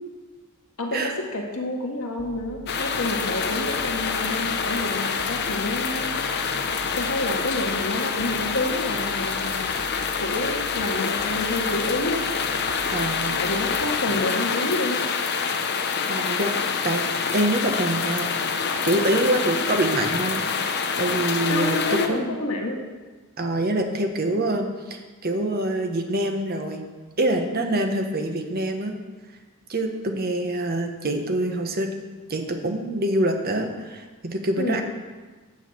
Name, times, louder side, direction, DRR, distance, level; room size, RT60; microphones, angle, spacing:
voice 1, 0.8-6.6 6.9-9.7 10.2-12.2 13.4-15.0 21.5-22.8 34.6-34.8, left 2 dB, 70° left, 1 dB, 1.7 m, -29 dB
sound 1, 2.2-14.4, right 3 dB, 80° right, 0.9 m, -43 dB
sound 2, 2.7-22.1, left 5 dB, 50° left, 0.8 m, -26 dB
voice 2, 12.9-13.4 16.1-16.5 16.8-18.3 18.8-22.2 23.4-26.8 27.2-28.9 29.7-31.9 32.3-34.8, right 1 dB, 45° right, 4 dB, 1.2 m, -25 dB
8.9 x 6.5 x 7.7 m, 1.3 s
head